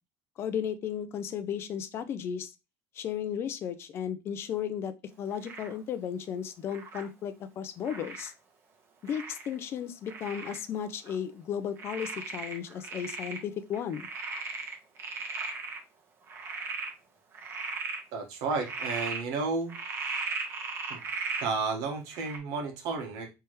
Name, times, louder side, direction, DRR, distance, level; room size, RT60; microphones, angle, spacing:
voice 1, 0.4-2.5 3.0-8.3 9.0-14.1, left 8 dB, 40° left, 12 dB, 0.5 m, -34 dB
Frog, 5.4-5.8 6.7-7.1 7.8-8.3 9.1-9.5 10.1-10.6 11.1-11.2 11.8-13.4 13.7-15.8 16.3-16.9 17.3-18.0 18.5-19.2 19.7-21.5 22.1-22.4, right 4 dB, 40° right, 1.2 m, -37 dB
voice 2, 18.1-19.8 20.9-21.0 21.4-23.3, right 4 dB, 75° right, 4 dB, 1.4 m, -32 dB
4.6 x 3.4 x 3.1 m, 0.25 s
cardioid pair, 150°, 6 cm